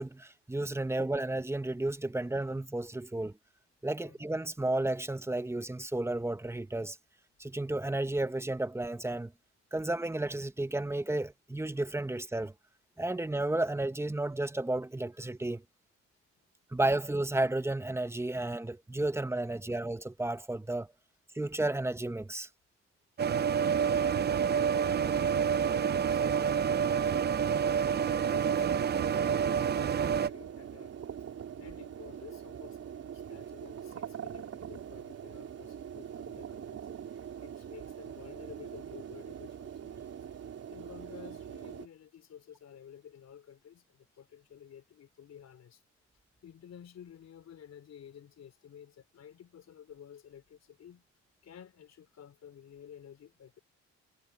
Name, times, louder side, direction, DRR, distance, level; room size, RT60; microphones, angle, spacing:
voice 1, 0.0-3.3 3.8-7.0 7.4-9.3 9.7-12.5 13.0-15.6 16.7-20.9 21.3-22.5, right 2 dB, 10° right, 1.0 m, -32 dB
sound 1, 23.2-30.3, right 7 dB, 35° right, 0.5 m, -28 dB
voice 2, 23.9-27.5 27.9-31.0 31.6-36.9 37.4-40.2 40.7-45.8 46.4-51.1 51.4-53.6, left 9 dB, 60° left, 3.5 m, -52 dB
sound 2, 28.4-41.9, right 8 dB, 55° right, 3.4 m, -43 dB
cardioid pair, 90°, 30 cm